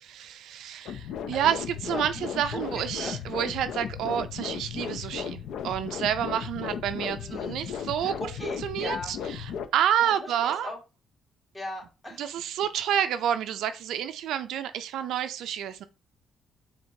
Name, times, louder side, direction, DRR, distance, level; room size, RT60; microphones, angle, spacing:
voice 1, 0.0-8.2 8.6-10.7 12.2-15.8, right 10 dB, 80° right, 0.3 m, -29 dB
sound 1, 0.9-9.7, left 8 dB, 80° left, 0.4 m, -35 dB
voice 2, 1.9-3.2 7.2-7.6 8.0-9.2 10.0-10.8 11.5-12.2, left 1 dB, 25° left, 1.7 m, -39 dB
4.4 x 2.8 x 2.7 m
cardioid pair, 90°, 0 cm